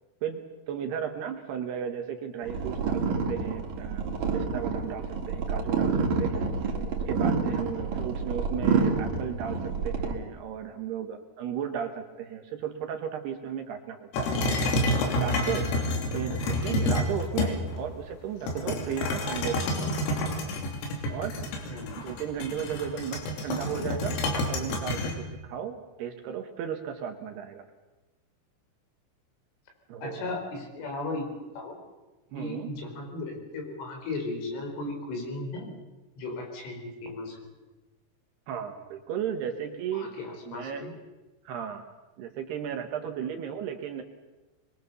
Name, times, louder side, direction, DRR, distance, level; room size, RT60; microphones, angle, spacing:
voice 1, 0.2-4.1 4.3-6.7 7.1-14.3 15.0-15.7 16.1-20.0 21.1-21.3 22.0-24.2 24.5-27.6 29.9-30.3 32.3-32.7 38.5-40.1 40.5-40.9 41.4-41.9 42.2-44.0, right 8 dB, 70° right, 6 dB, 2.8 m, -35 dB
sound 1, 2.4-10.1, right 5 dB, 50° right, 3.4 m, -28 dB
sound 2, 14.1-17.8 18.5-25.1, left 1 dB, 90° left, 5.7 m, -29 dB
voice 2, 30.0-31.7 32.4-35.8 36.2-37.4 39.9-40.9, left 2 dB, 70° left, 2 dB, 7.2 m, -36 dB
24.0 x 23.0 x 6.9 m, 1.1 s
omnidirectional pair, 5.8 m